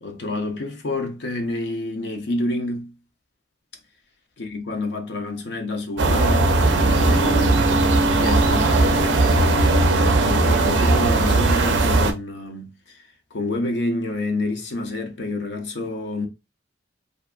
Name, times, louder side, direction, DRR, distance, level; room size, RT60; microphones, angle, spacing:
voice 1, 0.0-2.9 4.4-7.8 8.1-13.0 13.3-16.3, left 2 dB, 70° left, 0.6 m, -28 dB
sound 1, 6.0-12.1, right 2 dB, 75° right, 0.5 m, -18 dB
2.7 x 2.2 x 2.4 m
head